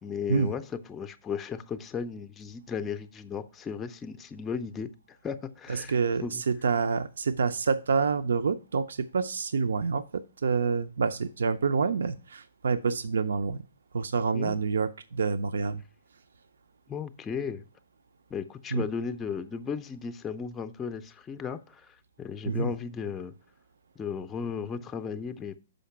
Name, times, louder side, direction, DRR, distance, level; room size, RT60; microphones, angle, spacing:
voice 1, 0.0-6.4 14.3-14.6 16.9-17.6 18.3-23.3 24.0-25.6, left 6 dB, 15° left, 0.5 m, -35 dB
voice 2, 5.7-13.6 13.9-15.8 18.7-18.9 22.5-22.7, right 5 dB, 75° right, 0.4 m, -27 dB
6.3 x 5.1 x 5.7 m
hypercardioid pair, 125°, 0 cm